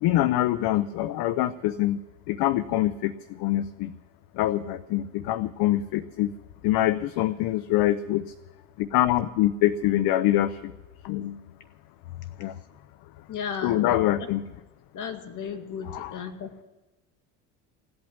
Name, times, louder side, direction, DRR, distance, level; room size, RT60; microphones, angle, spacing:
voice 1, 0.0-2.0 2.3-3.9 4.3-6.3 6.6-8.2 8.8-10.7 11.0-11.4 12.4-12.5 13.6-14.4 15.9-16.2, left 14 dB, 70° left, 14 dB, 0.7 m, -24 dB
voice 2, 13.3-14.3 14.9-16.6, left 6 dB, 55° left, 7 dB, 2.2 m, -35 dB
16.5 x 8.8 x 9.9 m, 1.2 s
supercardioid pair, 75°, 38 cm